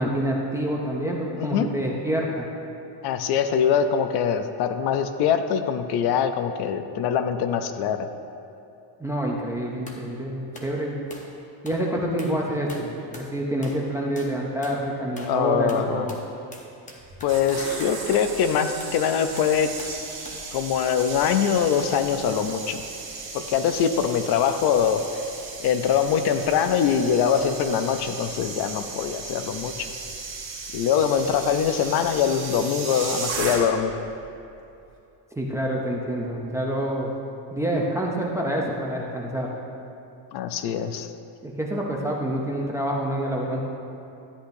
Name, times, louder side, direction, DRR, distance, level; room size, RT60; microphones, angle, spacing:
voice 1, 0.0-2.5 9.0-11.0 11.6-16.1 35.4-37.1 37.5-39.5 41.4-43.6, right 1 dB, 5° right, -2 dB, 0.4 m, -27 dB
voice 2, 1.4-1.7 3.0-8.1 12.2-12.4 15.2-16.1 17.2-19.7 20.5-22.8 23.3-25.0 25.6-29.9 30.7-33.9 40.3-41.1, left 7 dB, 60° left, 9 dB, 0.6 m, -23 dB
sound 1, 9.9-10.1 10.5-10.7 11.1-11.3 11.7-11.9 12.2-12.4 12.7-13.3 13.6-13.9 14.2-14.4 14.6-14.8 15.2-15.4 15.7-18.3 18.8-19.0 19.4-20.0 20.3-20.5, left 2 dB, 15° left, 0.8 m, -44 dB
sound 2, 17.0-34.0 34.2-34.5, right 4 dB, 35° right, 1.8 m, -36 dB
13.0 x 9.9 x 2.6 m, 2.7 s
cardioid pair, 175°, 45 cm